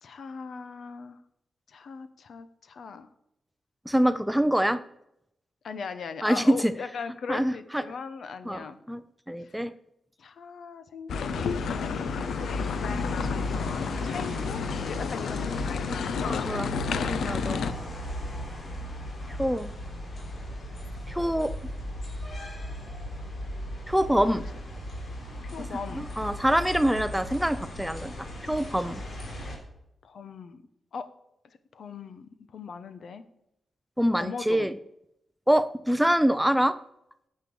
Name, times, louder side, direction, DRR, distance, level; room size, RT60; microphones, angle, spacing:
voice 1, 0.0-1.2 1.7-3.1 5.6-8.8 9.4-9.6 10.2-12.0 13.2-14.6 14.8-16.4 17.5-17.8 24.3-24.4 25.4-26.1 30.0-30.6 30.9-31.1 31.4-33.2 34.1-34.7, left 5 dB, 70° left, 11 dB, 1.0 m, -39 dB
voice 2, 3.9-4.8 6.2-6.7 7.3-7.8 8.5-9.0 9.3-9.7 15.9-16.0 16.3-16.7 17.0-17.6 19.4-19.7 21.1-21.5 23.9-24.4 26.2-29.0 34.0-34.7 35.5-36.8, equal, 5° right, 13 dB, 0.5 m, -25 dB
sound 1, 11.1-17.7, left 7 dB, 85° left, 0.5 m, -31 dB
sound 2, 11.1-29.6, left 1 dB, 50° left, 3.6 m, -36 dB
9.9 x 6.8 x 6.8 m, 0.80 s
cardioid pair, 100°, 0 cm